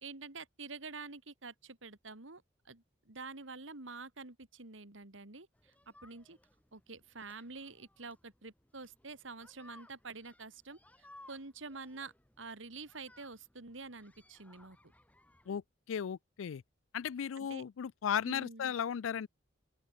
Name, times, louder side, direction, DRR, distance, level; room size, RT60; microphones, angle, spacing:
voice 1, 0.0-5.7 6.0-6.4 6.7-14.8 17.4-17.6 18.2-18.7, right 4 dB, 80° right, 2.5 m, -48 dB
sound 1, 5.5-15.6, left 2 dB, 5° left, 1.9 m, -62 dB
voice 2, 15.9-16.6 16.9-19.3, left 8 dB, 85° left, 0.4 m, -35 dB
open air
head